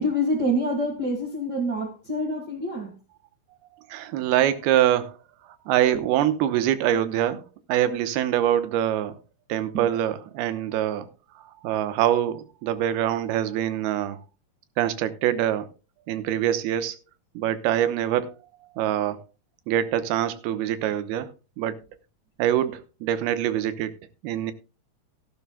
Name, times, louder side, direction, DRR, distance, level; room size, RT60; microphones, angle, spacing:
voice 1, 0.0-2.9 5.9-6.0 9.7-10.0, equal, 40° right, 1.6 m, -27 dB
voice 2, 3.9-5.2 5.7-7.4 7.7-9.2 9.5-11.1 11.6-14.2 14.8-15.7 16.1-17.0 17.4-18.3 18.8-19.2 19.7-21.3 21.6-21.8 22.4-23.9 24.2-24.5, right 11 dB, 90° right, 2.9 m, -24 dB
16.0 x 12.5 x 2.2 m
omnidirectional pair, 4.5 m